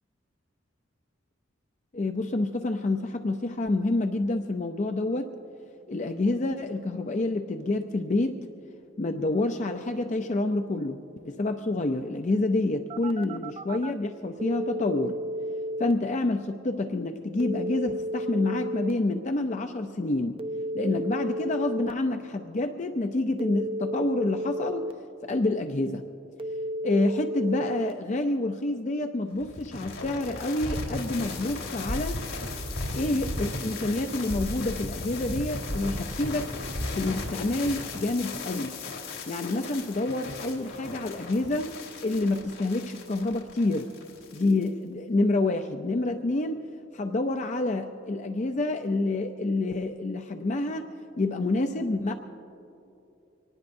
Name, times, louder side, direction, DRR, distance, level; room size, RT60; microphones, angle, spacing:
voice 1, 1.9-5.3 5.9-8.5 9.0-15.2 15.8-20.4 20.7-24.9 25.2-26.0 26.8-32.2 32.9-36.5 37.0-38.8 39.3-41.8 42.0-43.9 44.3-46.6 46.9-50.9 51.2-52.1, left 2 dB, 40° left, 6 dB, 0.5 m, -28 dB
Telephone, 12.9-13.9 14.4-15.9 17.4-18.9 20.4-21.9 23.4-24.9 26.4-27.9, equal, 30° right, 0.4 m, -32 dB
sound 1, 29.4-44.7, left 2 dB, 90° left, 3.4 m, -35 dB
25.0 x 19.0 x 2.6 m, 2.9 s
head